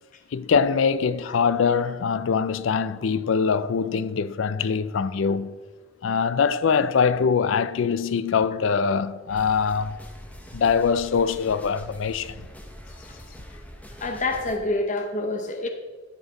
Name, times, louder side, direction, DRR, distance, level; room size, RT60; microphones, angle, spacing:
voice 1, 0.3-5.6 6.0-10.0 10.5-12.4, left 6 dB, 70° left, 0.4 m, -23 dB
sound 1, 9.3-14.6, equal, 5° left, 0.8 m, -43 dB
voice 2, 14.0-15.7, left 2 dB, 40° left, 0.8 m, -27 dB
12.0 x 7.0 x 4.0 m
head